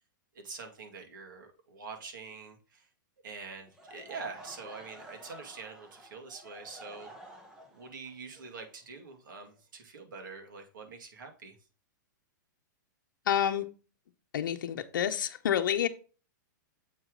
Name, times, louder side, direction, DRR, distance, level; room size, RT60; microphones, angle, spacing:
voice 1, 0.3-2.9 3.2-7.3 7.7-11.6, right 4 dB, 75° right, 2.0 m, -45 dB
Laughter / Crowd, 3.7-9.6, right 1 dB, 5° right, 0.8 m, -51 dB
voice 2, 13.3-13.7 14.3-15.9, left 9 dB, 85° left, 0.7 m, -28 dB
7.3 x 4.8 x 3.8 m
supercardioid pair, 170°, 11 cm